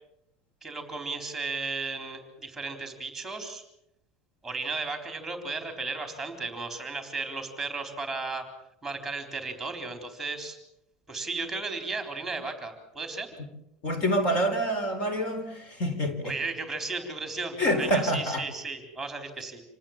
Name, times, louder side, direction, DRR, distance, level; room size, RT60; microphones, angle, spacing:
voice 1, 0.6-3.6 4.4-8.5 8.8-10.6 11.1-13.3 16.2-19.6, right 3 dB, 5° right, 4.0 m, -35 dB
voice 2, 13.8-16.4 17.6-18.4, equal, 40° left, 4.2 m, -27 dB
27.5 x 19.0 x 7.4 m
cardioid pair, 160°, 3 cm